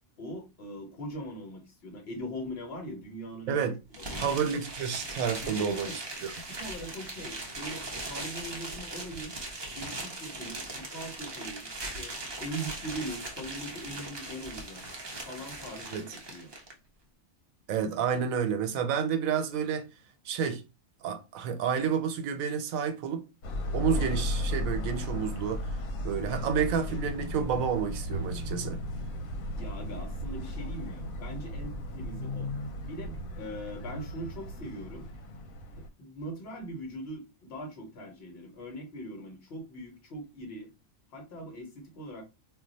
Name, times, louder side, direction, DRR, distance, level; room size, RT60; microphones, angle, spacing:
voice 1, 0.2-4.3 5.4-6.0 6.5-9.4 9.7-14.9 15.2-16.5 29.5-32.5 32.8-35.1 35.8-40.7 41.1-42.2, right 1 dB, 50° left, 1.1 m, -41 dB
voice 2, 3.5-3.8 4.2-5.9 6.2-6.3 15.9-16.0 17.7-19.9 20.2-20.6 21.0-23.3 23.7-25.8 26.0-28.8, right 7 dB, 85° right, 1.0 m, -30 dB
sound 1, 3.9-16.7, right 2 dB, 40° right, 0.3 m, -39 dB
sound 2, 23.4-35.9, left 1 dB, 85° left, 1.0 m, -35 dB
2.4 x 2.2 x 3.9 m
omnidirectional pair, 1.4 m